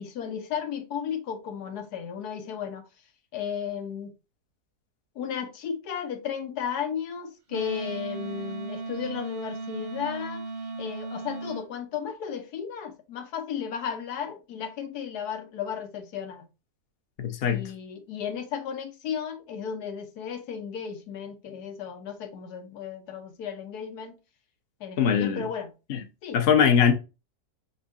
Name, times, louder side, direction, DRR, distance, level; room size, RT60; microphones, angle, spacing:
voice 1, 0.0-2.9 3.3-4.1 5.1-10.5 10.8-16.5 17.5-24.1 24.8-25.7 26.2-26.4, left 7 dB, 85° left, 1.4 m, -34 dB
Wind instrument woodwind instrument, 7.5-11.7, right 2 dB, 40° right, 0.8 m, -36 dB
voice 2, 17.2-17.7 25.0-25.4 25.9-26.0 26.3-26.9, left 7 dB, 45° left, 0.9 m, -21 dB
5.4 x 3.6 x 2.6 m
omnidirectional pair, 1.7 m